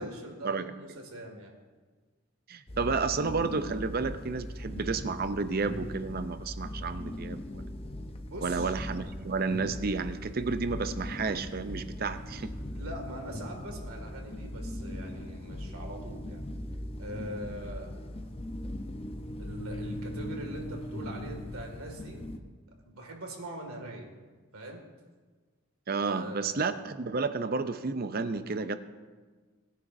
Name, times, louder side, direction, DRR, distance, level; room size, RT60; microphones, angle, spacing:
voice 1, 0.0-1.5 8.3-8.8 12.7-16.4 17.0-18.0 19.4-22.2 22.8-24.1 24.5-24.9 26.0-26.6, right 1 dB, 90° right, 2 dB, 2.2 m, -42 dB
voice 2, 2.5-7.6 8.4-12.5 25.9-28.8, right 4 dB, 45° right, 11 dB, 0.6 m, -31 dB
sound 1, 2.7-22.4, left 1 dB, 25° left, 0.7 m, -39 dB
19.5 x 10.0 x 2.7 m, 1.4 s
head